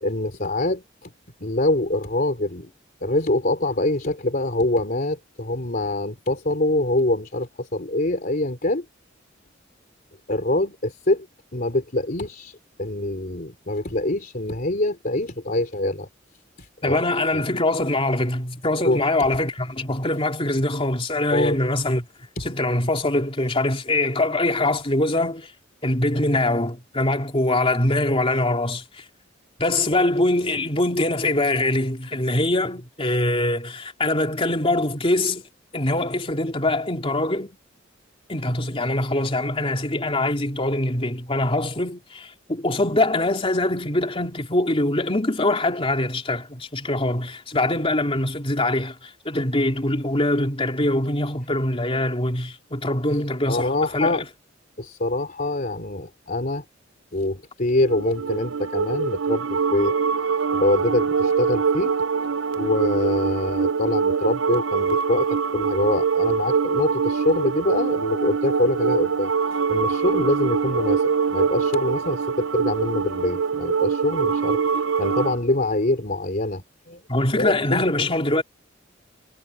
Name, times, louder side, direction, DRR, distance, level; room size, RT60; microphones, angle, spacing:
voice 1, 0.0-1.1 1.4-2.7 3.0-8.8 10.3-11.3 11.5-16.1 16.6-17.0 17.3-17.4 18.8-19.0 21.3-21.6 22.4-22.5 53.5-54.2 54.8-56.6 57.1-59.9 60.5-61.9 62.6-69.3 69.7-74.6 75.0-77.0 77.4-77.9, left 1 dB, 45° left, 3.2 m, -24 dB
voice 2, 16.8-22.1 22.4-25.5 25.8-29.0 29.6-35.4 35.7-37.6 38.3-54.2 77.1-78.4, left 1 dB, 30° left, 3.1 m, -23 dB
sound 1, 57.8-75.4, right 5 dB, 75° right, 0.7 m, -24 dB
head